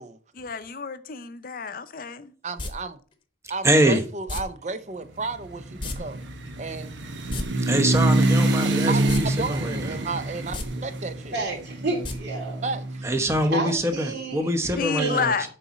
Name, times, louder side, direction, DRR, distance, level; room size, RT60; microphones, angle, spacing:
voice 1, 0.3-2.3 14.8-15.5, left 6 dB, 50° left, 0.6 m, -29 dB
voice 2, 2.4-3.0 3.5-6.2 6.6-6.9 8.9-11.4 12.6-13.1, right 3 dB, 40° right, 0.6 m, -33 dB
sound 1, 2.6-2.7 4.3-4.4 5.8-6.0 6.2-6.3 7.2-7.4 9.1-9.2 9.6-9.7 10.4-10.7 12.0-12.1 12.5-12.6, left 2 dB, 25° left, 1.0 m, -31 dB
voice 3, 3.6-4.0 7.7-9.9 13.0-15.5, right 1 dB, 15° right, 0.9 m, -24 dB
sound 2, 5.3-13.3, right 2 dB, 85° right, 1.0 m, -26 dB
voice 4, 11.3-12.6 13.5-14.5 15.0-15.3, right 3 dB, 70° right, 3.3 m, -30 dB
6.8 x 4.1 x 5.9 m
head